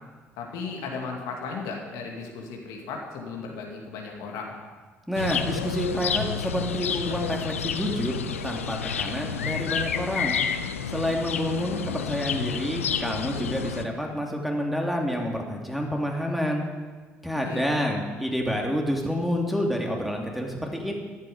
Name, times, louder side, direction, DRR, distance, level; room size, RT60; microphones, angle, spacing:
voice 1, 0.4-4.6 17.4-17.7, left 4 dB, 70° left, 0 dB, 2.3 m, -35 dB
sound 1, 5.1-13.8, left 7 dB, 90° left, 0.5 m, -30 dB
voice 2, 5.1-8.2 8.4-10.4 10.9-16.6 17.2-20.9, equal, ahead, 0 dB, 3.0 m, -28 dB
14.0 x 12.0 x 5.1 m, 1.4 s
hypercardioid pair, 50°, 7 cm